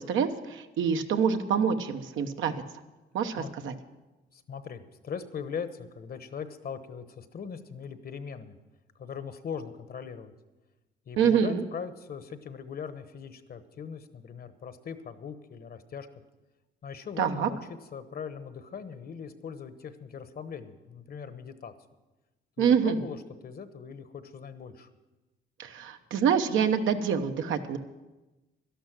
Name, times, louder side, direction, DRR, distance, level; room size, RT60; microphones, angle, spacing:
voice 1, 0.0-2.5 3.1-3.7 11.2-11.6 17.2-17.5 22.6-23.0 25.6-27.8, right 7 dB, 80° right, 7 dB, 1.0 m, -26 dB
voice 2, 4.3-8.6 9.0-10.3 11.1-16.1 16.8-21.7 22.6-23.2 23.4-24.9, left 6 dB, 50° left, 11 dB, 1.1 m, -40 dB
12.5 x 11.5 x 6.1 m, 1.1 s
cardioid pair, 90°, 20 cm